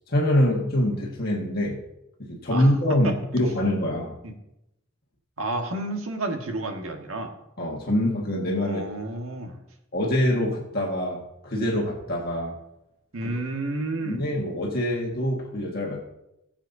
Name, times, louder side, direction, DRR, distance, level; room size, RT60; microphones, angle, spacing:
voice 1, 0.1-1.8 2.2-4.2 7.6-8.8 9.9-12.6 14.0-16.0, left 1 dB, 45° left, -2 dB, 1.6 m, -25 dB
voice 2, 2.5-3.1 4.2-4.3 5.4-7.3 8.6-9.6 13.1-14.2, right 2 dB, 80° right, 3 dB, 1.5 m, -31 dB
18.5 x 7.5 x 2.7 m, 0.86 s
head